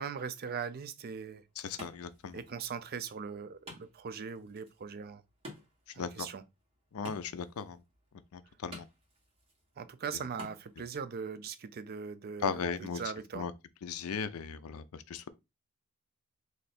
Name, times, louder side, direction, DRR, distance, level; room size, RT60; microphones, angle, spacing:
voice 1, 0.0-1.4 2.3-5.2 5.9-6.4 9.8-13.5, right 6 dB, 45° right, 0.4 m, -40 dB
Wood, 1.0-11.0, equal, 25° right, 1.3 m, -54 dB
voice 2, 1.6-2.4 6.0-6.3 6.9-7.8 8.3-8.9 12.4-13.0 13.3-13.5 13.8-15.3, left 6 dB, 70° left, 0.4 m, -37 dB
3.2 x 2.7 x 4.1 m
head